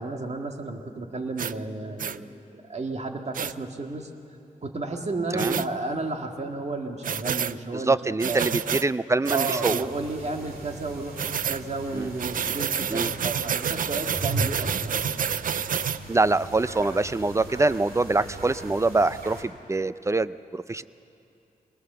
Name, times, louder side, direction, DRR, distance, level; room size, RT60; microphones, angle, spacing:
voice 1, 0.0-4.1 4.6-8.6 9.3-15.0, right 3 dB, 50° right, 3 dB, 2.0 m, -32 dB
sound 1, 1.4-1.5 2.0-2.2 3.3-3.5 5.4-5.7 7.0-7.5 8.2-8.8 9.2-9.8 11.2-11.6 12.2-16.0, right 8 dB, 65° right, 0.5 m, -28 dB
voice 2, 7.7-9.8 11.9-12.1 12.9-13.1 16.1-20.8, right 2 dB, 20° right, 15 dB, 0.5 m, -24 dB
sound 2, 9.8-19.4, right 1 dB, 85° right, 2.4 m, -38 dB
23.0 x 19.5 x 6.8 m, 2.7 s
cardioid pair, 60°, 15 cm